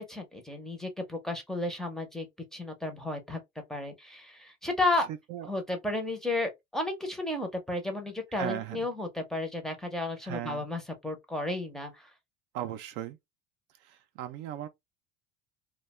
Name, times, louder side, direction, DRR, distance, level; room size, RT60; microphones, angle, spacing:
voice 1, 0.0-2.3 2.5-3.4 3.7-5.1 5.5-12.1, left 2 dB, ahead, 0.6 m, -33 dB
voice 2, 8.4-8.9 10.2-10.7 12.5-13.2 13.9-14.7, right 11 dB, 60° right, 0.4 m, -37 dB
2.3 x 2.2 x 3.0 m
cardioid pair, 145°, 20 cm